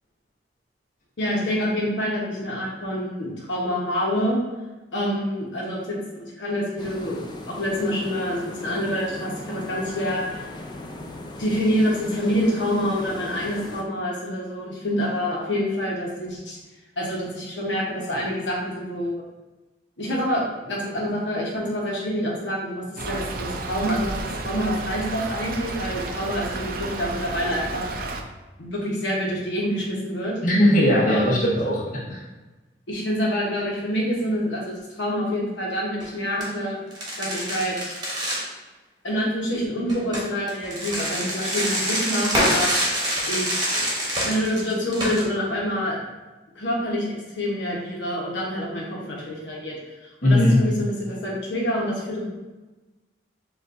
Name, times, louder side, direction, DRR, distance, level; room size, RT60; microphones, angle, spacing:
voice 1, 1.2-4.4 4.9-10.4 11.4-16.6 17.0-19.2 20.0-28.1 28.6-30.4 31.1-31.3 32.9-36.8 37.2-37.9 39.0-43.5 43.7-43.8 44.2-46.0 46.5-49.7 50.2-52.2, equal, 90° left, -4 dB, 1.1 m, -27 dB
sound 1, 6.8-13.8, left 2 dB, 25° left, 0.4 m, -38 dB
Stream / Trickle dribble, 23.0-28.2, right 2 dB, 50° right, 0.4 m, -32 dB
voice 2, 30.4-32.2 50.2-50.6, left 1 dB, 45° left, -6 dB, 1.2 m, -19 dB
sound 2, 35.9-36.1 36.4-36.5 36.9-38.5 39.9-45.2, equal, 25° right, 1.0 m, -26 dB
7.0 x 2.5 x 2.6 m, 1.1 s
head